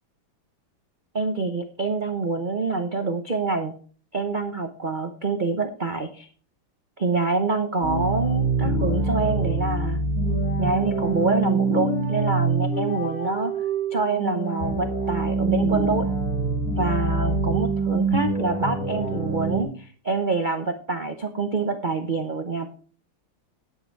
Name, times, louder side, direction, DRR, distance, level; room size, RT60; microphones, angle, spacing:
voice 1, 1.1-3.7 4.1-6.3 7.0-10.0 10.6-13.6 13.9-16.0 16.7-22.7, right 3 dB, 65° right, 6 dB, 0.4 m, -26 dB
sound 1, 7.8-19.6, right 3 dB, 45° left, 3.6 m, -25 dB
10.5 x 7.8 x 4.6 m, 0.42 s
omnidirectional pair, 2.3 m